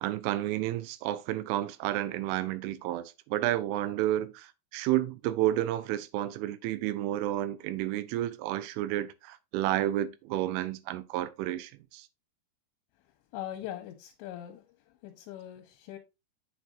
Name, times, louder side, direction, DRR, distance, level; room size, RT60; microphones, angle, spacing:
voice 1, 0.0-12.1, right 14 dB, 85° right, 3.1 m, -31 dB
voice 2, 13.3-14.6 15.0-16.0, left 12 dB, 80° left, 2.8 m, -41 dB
8.0 x 6.2 x 2.5 m
omnidirectional pair, 5.6 m